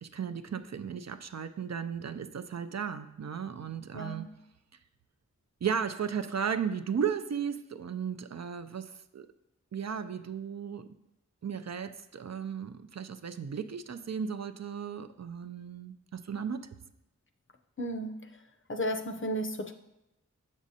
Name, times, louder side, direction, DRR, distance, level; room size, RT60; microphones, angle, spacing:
voice 1, 0.0-4.3 5.6-9.3 9.7-10.9 11.4-16.7, right 7 dB, 55° right, 9 dB, 0.4 m, -35 dB
voice 2, 3.9-4.3 17.8-18.1 18.7-19.7, equal, 40° left, 6 dB, 0.6 m, -33 dB
7.1 x 6.3 x 2.7 m, 0.91 s
wide cardioid pair, 40°, 31 cm